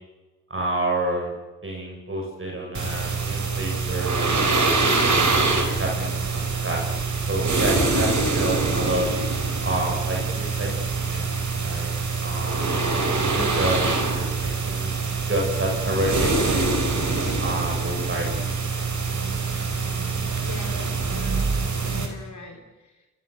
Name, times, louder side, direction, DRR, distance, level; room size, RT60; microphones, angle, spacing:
voice 1, 0.5-1.3 1.6-5.0 5.7-6.8 7.3-9.1 9.6-10.7 11.0-11.9 12.2-13.9 14.1-15.0 15.3-16.7 17.4-18.4, right 1 dB, 45° right, 0 dB, 6.8 m, -29 dB
sound 1, 2.7-22.1, right 3 dB, 70° right, 4.6 m, -24 dB
voice 2, 20.4-21.5 21.8-23.1, left 4 dB, 75° left, 1 dB, 3.8 m, -41 dB
29.5 x 26.5 x 7.0 m, 1.2 s
wide cardioid pair, 80°, 30 cm